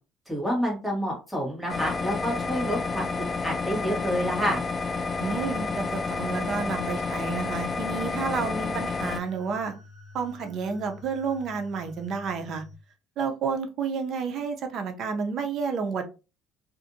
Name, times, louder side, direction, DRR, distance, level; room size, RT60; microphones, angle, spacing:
voice 1, 0.3-4.6, equal, ahead, 1.3 m, -28 dB
sound 1, 1.7-9.2, left 4 dB, 30° left, 0.3 m, -30 dB
sound 2, 5.0-12.8, left 3 dB, 30° right, 1.5 m, -48 dB
voice 2, 5.2-9.7 10.1-12.6 13.2-16.0, right 5 dB, 50° right, 0.6 m, -30 dB
2.5 x 2.5 x 2.6 m
cardioid pair, 125°, 0 cm